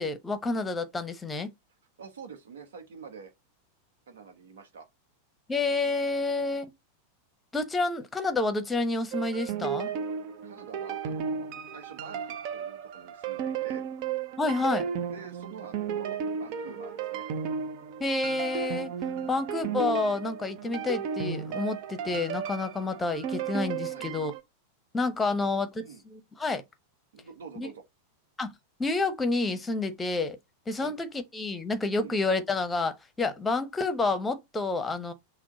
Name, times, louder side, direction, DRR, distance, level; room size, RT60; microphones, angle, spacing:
voice 1, 0.0-1.5 5.5-6.7 7.5-9.9 14.4-14.8 18.0-18.9 19.3-24.3 24.9-26.6 27.6-27.7 28.4-28.5 28.8-30.4 30.7-35.1, left 3 dB, 10° left, 0.8 m, -29 dB
voice 2, 2.0-3.3 4.1-4.9 6.4-6.6 10.4-13.8 15.1-17.3 19.1-19.4 23.9-24.1 25.3-25.5 25.8-26.0 27.1-27.8 30.8-30.9 32.0-32.2, right 6 dB, 60° right, 1.1 m, -47 dB
sound 1, 9.1-24.4, right 7 dB, 45° right, 0.6 m, -34 dB
6.0 x 2.2 x 3.9 m
figure-of-eight pair, 90°, 0 cm